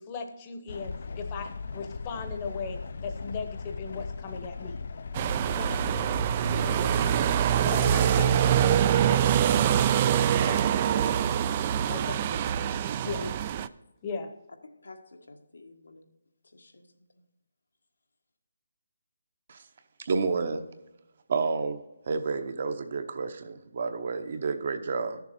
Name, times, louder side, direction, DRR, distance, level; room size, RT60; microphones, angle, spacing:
voice 1, 0.0-4.8 5.5-6.1 6.5-7.2 7.6-10.6 11.0-11.2 11.9-12.2 13.0-13.3 14.0-14.3, left 4 dB, 20° left, 6 dB, 0.9 m, -38 dB
sound 1, 0.7-7.4, left 4 dB, 50° left, 0.5 m, -38 dB
sound 2, 5.1-13.7, right 10 dB, 25° right, 0.3 m, -24 dB
voice 2, 8.1-8.4 10.3-11.5 12.2-12.6 13.2-13.6 14.6-16.1 16.4-16.9, left 2 dB, 85° left, 4 dB, 1.6 m, -46 dB
voice 3, 20.0-20.7 21.3-21.8 22.1-25.2, right 4 dB, 40° right, 8 dB, 0.8 m, -30 dB
12.0 x 7.0 x 4.4 m, 0.92 s
hypercardioid pair, 170°, 0 cm